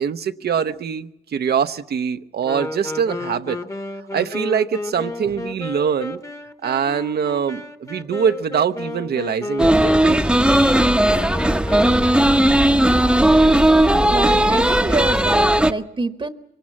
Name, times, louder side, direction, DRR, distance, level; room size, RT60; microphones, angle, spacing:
voice 1, 0.0-3.6 4.1-6.2 6.6-10.2, right 7 dB, 65° right, 9 dB, 0.8 m, -23 dB
Wind instrument woodwind instrument, 2.4-12.3, left 2 dB, 15° left, 1.1 m, -32 dB
sound 1, 9.6-15.7, right 1 dB, 5° right, 0.8 m, -16 dB
voice 2, 14.1-16.3, right 3 dB, 30° right, 9 dB, 1.0 m, -26 dB
24.0 x 18.5 x 7.4 m, 0.86 s
cardioid pair, 80°, 18 cm